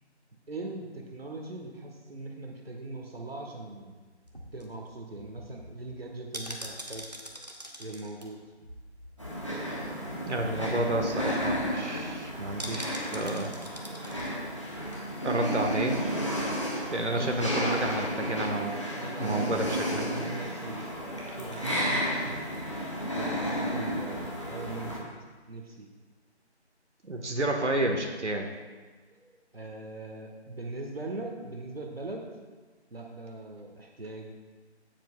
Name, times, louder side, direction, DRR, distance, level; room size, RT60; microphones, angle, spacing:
voice 1, 0.5-4.0 4.5-7.1 7.8-8.4 17.2-17.4 18.7-19.7 19.9-22.5 23.1-25.1 25.5-25.9 29.5-32.3 32.9-34.3, right 2 dB, 60° right, 1 dB, 1.4 m, -40 dB
sound 1, 4.2-9.5 9.8-9.9 10.2-10.4 10.8-10.9 11.2-11.5 12.6-14.3 14.7-14.8, equal, 40° right, 1.0 m, -43 dB
sound 2, 9.2-25.0, equal, 25° left, 1.3 m, -33 dB
voice 2, 10.2-14.3 15.2-16.0 16.9-18.9 19.2-20.2 27.1-28.5, right 1 dB, 85° right, 2 dB, 1.4 m, -30 dB
17.0 x 7.5 x 2.3 m, 1.4 s
figure-of-eight pair, 180°, 34 cm